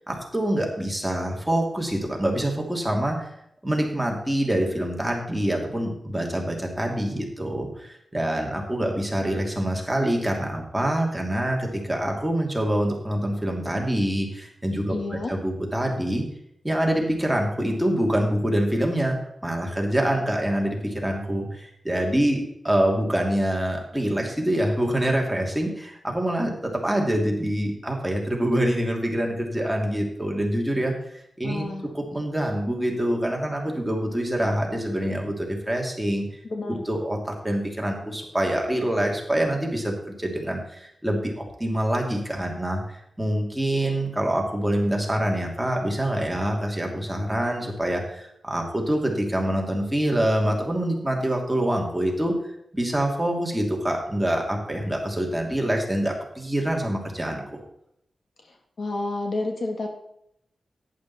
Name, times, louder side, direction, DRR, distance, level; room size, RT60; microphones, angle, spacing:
voice 1, 0.1-3.3 3.6-16.2 16.6-19.2 19.4-30.9 31.4-31.6 31.9-36.3 36.8-52.4 52.7-57.6, right 1 dB, 5° right, 0 dB, 2.7 m, -25 dB
voice 2, 14.9-15.3 31.4-31.9 36.5-36.8 58.8-59.9, left 2 dB, 60° left, 3 dB, 1.8 m, -29 dB
11.0 x 9.7 x 4.2 m, 0.74 s
wide cardioid pair, 85°, 0 cm